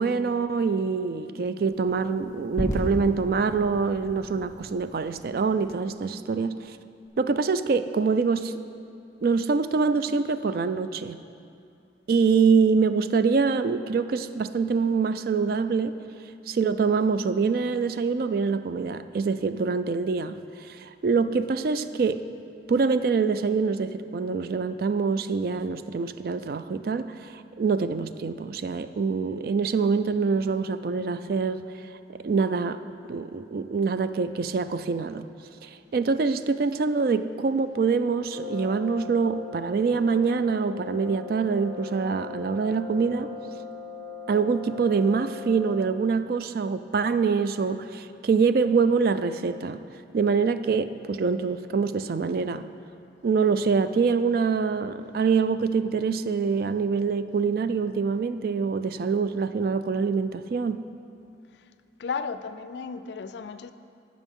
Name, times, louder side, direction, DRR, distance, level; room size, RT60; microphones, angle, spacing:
voice 1, 0.0-6.7 7.2-8.5 9.2-11.2 12.1-16.0 16.5-20.4 20.7-22.2 22.7-31.6 32.2-32.8 33.1-35.3 35.6-43.3 44.3-49.8 50.1-52.7 53.2-60.8, right 5 dB, 55° right, 12 dB, 0.3 m, -25 dB
sound 1, 1.7-6.0, equal, 20° left, 1.1 m, -36 dB
Brass instrument, 38.3-46.1, left 5 dB, 70° right, 0.7 m, -39 dB
voice 2, 62.0-63.7, left 5 dB, 70° left, 12 dB, 0.4 m, -34 dB
17.0 x 6.0 x 3.6 m, 2.6 s
head